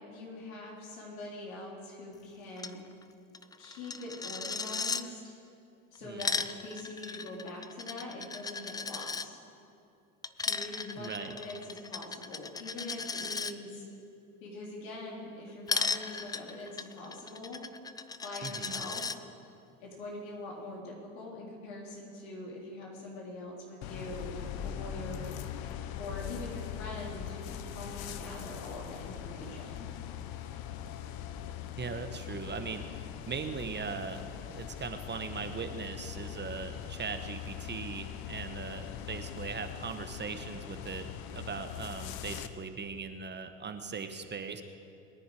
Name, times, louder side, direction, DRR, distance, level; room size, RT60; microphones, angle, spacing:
voice 1, 0.1-2.8 3.6-5.2 5.9-9.4 10.5-13.8 14.4-17.6 18.2-19.1 19.8-25.3 26.0-29.9, left 2 dB, 80° left, -2 dB, 3.6 m, -43 dB
Coin (dropping), 2.6-2.7 3.0-3.1 3.3-5.0 6.0-9.3 10.2-13.5 15.7-19.2, left 4 dB, 10° left, 0.3 m, -36 dB
voice 2, 6.0-6.4 11.0-11.4 18.4-18.8 31.8-44.6, right 5 dB, 25° right, 8 dB, 1.1 m, -39 dB
sound 1, 23.8-42.5, left 10 dB, 60° left, 0.9 m, -41 dB
21.5 x 10.0 x 4.8 m, 2.5 s
hypercardioid pair, 80°, 41 cm